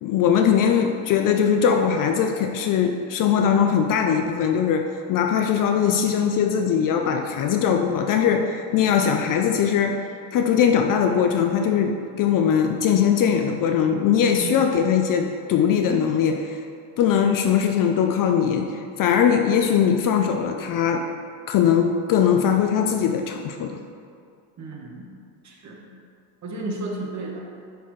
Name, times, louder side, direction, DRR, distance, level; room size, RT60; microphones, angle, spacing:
voice 1, 0.0-10.0 10.3-16.6 17.0-21.1 21.5-23.8, left 7 dB, 45° left, 5 dB, 0.4 m, -21 dB
voice 2, 14.4-14.9 24.6-25.1 25.4-25.9 26.4-27.5, right 2 dB, 35° right, -1 dB, 1.2 m, -33 dB
10.0 x 4.1 x 3.1 m, 2.4 s
supercardioid pair, 110°, 48 cm